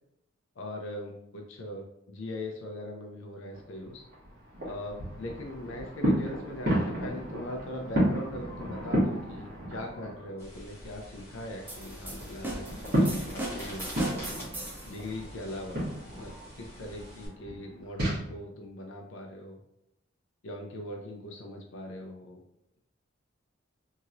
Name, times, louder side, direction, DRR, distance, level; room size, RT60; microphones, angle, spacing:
voice 1, 0.6-4.0 4.6-12.7 13.3-14.2 14.9-15.9 16.2-19.6 20.4-22.4, left 1 dB, 80° left, 2 dB, 0.5 m, -40 dB
sound 1, 3.5-10.4 10.7-18.2, equal, 50° right, 1.1 m, -33 dB
sound 2, 10.4-17.3, equal, 15° left, 0.9 m, -46 dB
sound 3, 11.7-15.0, right 1 dB, 10° right, 0.4 m, -38 dB
2.9 x 2.8 x 2.5 m, 0.81 s
head